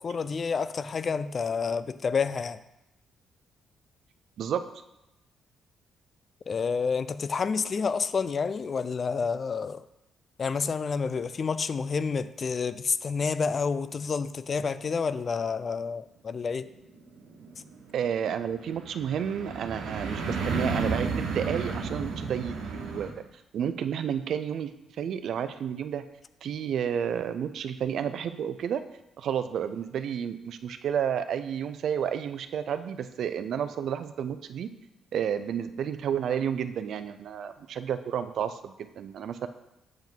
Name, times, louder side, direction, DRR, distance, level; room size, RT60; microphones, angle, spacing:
voice 1, 0.0-2.6 6.5-9.8 10.4-16.7, left 5 dB, 45° left, 14 dB, 0.4 m, -29 dB
sound 1, 16.7-23.1, right 4 dB, 85° right, 1.2 m, -32 dB
voice 2, 17.9-23.1 23.5-24.7 25.0-26.0 26.4-28.8 29.2-34.7 35.1-39.5, right 8 dB, 65° right, 11 dB, 0.5 m, -31 dB
7.6 x 5.7 x 4.5 m, 0.91 s
cardioid pair, 90°, 0 cm